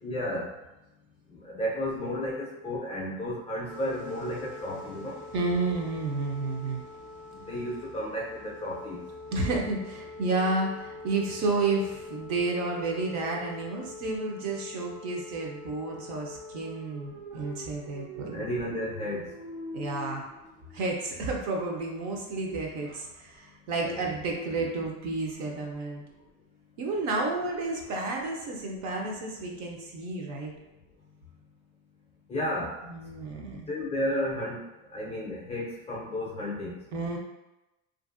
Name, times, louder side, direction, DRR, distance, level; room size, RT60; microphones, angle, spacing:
voice 1, 0.0-0.5 1.3-5.2 7.3-9.1 18.3-19.4 23.8-24.2 32.3-32.8 33.7-36.8, equal, 15° left, -5 dB, 0.5 m, -33 dB
sound 1, 3.7-21.5, left 2 dB, 90° right, 1.0 m, -44 dB
voice 2, 5.3-6.8 9.3-18.4 19.7-20.3 20.7-26.0 26.8-30.5 32.8-33.7 36.9-37.2, right 3 dB, 50° right, 0 dB, 0.6 m, -31 dB
2.6 x 2.5 x 2.4 m, 0.97 s
cardioid pair, 140°, 37 cm